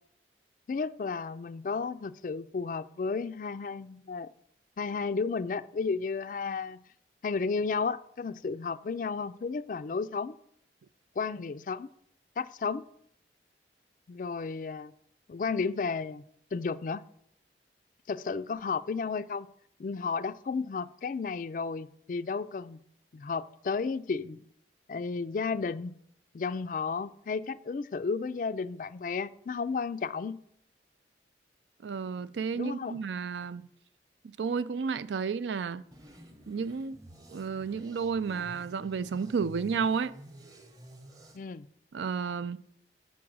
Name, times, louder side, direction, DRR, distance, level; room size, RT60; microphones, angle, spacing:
voice 1, 0.7-4.3 4.8-6.8 7.2-10.4 11.2-11.9 12.4-12.9 14.1-14.9 15.3-16.2 16.5-17.0 18.1-19.5 19.8-22.8 23.1-24.4 24.9-25.9 26.3-30.4 32.5-33.0 41.3-41.7, left 4 dB, 45° left, 0.3 m, -33 dB
voice 2, 31.8-33.7 34.4-35.8 36.5-37.0 37.3-40.1 41.9-42.6, right 5 dB, 80° right, 0.4 m, -32 dB
sound 1, 35.9-41.4, right 1 dB, 20° right, 0.9 m, -50 dB
7.2 x 6.0 x 6.1 m
head